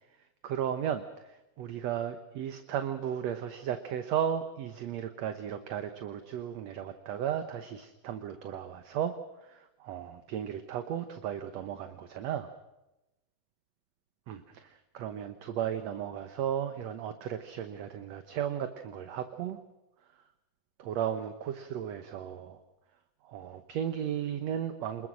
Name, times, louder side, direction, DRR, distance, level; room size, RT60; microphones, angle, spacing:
voice 1, 0.4-9.2 9.5-12.5 14.3-19.6 20.8-22.6 23.2-25.1, right 9 dB, 65° right, 9 dB, 1.9 m, -35 dB
26.5 x 21.0 x 6.3 m, 0.96 s
omnidirectional pair, 3.9 m